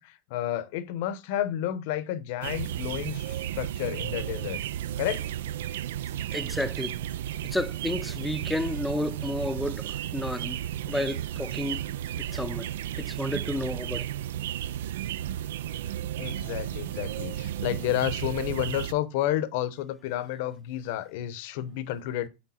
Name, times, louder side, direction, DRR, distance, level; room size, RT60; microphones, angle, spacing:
voice 1, 0.0-4.6 5.0-5.3 16.2-22.3, left 12 dB, 65° left, 0.8 m, -31 dB
sound 1, 2.4-18.9, right 11 dB, 90° right, 0.4 m, -33 dB
voice 2, 6.3-7.0 7.4-10.6 10.8-11.8 12.2-12.7 13.0-14.1, left 1 dB, 5° left, 0.6 m, -31 dB
8.6 x 3.5 x 4.3 m
supercardioid pair, 135°, 0 cm